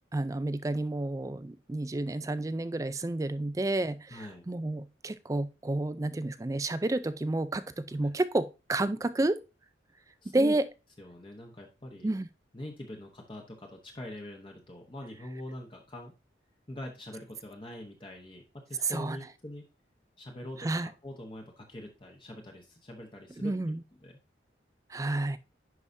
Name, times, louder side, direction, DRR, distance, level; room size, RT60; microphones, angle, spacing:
voice 1, 0.1-9.4 10.3-10.7 12.0-12.3 18.8-19.2 20.6-20.9 23.4-23.8 24.9-25.4, right 2 dB, 15° right, 0.3 m, -30 dB
voice 2, 4.1-4.5 8.0-8.1 10.2-10.6 11.0-12.1 12.5-16.1 16.7-19.7 20.2-23.5 24.0-24.2, left 1 dB, 25° left, 1.0 m, -43 dB
11.0 x 4.8 x 2.7 m
head